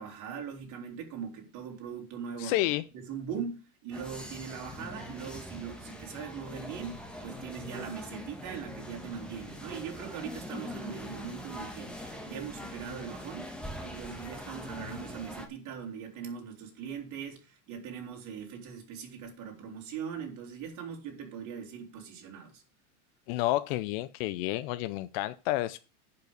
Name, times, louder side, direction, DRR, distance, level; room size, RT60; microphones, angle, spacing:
voice 1, 0.0-2.7 2.9-13.5 13.8-22.6, right 7 dB, 40° right, 3.2 m, -41 dB
voice 2, 2.4-2.8 23.3-25.8, left 16 dB, 40° left, 0.4 m, -30 dB
sound 1, 3.9-15.5, left 1 dB, ahead, 1.4 m, -43 dB
10.5 x 5.6 x 6.5 m
supercardioid pair, 145°, 46 cm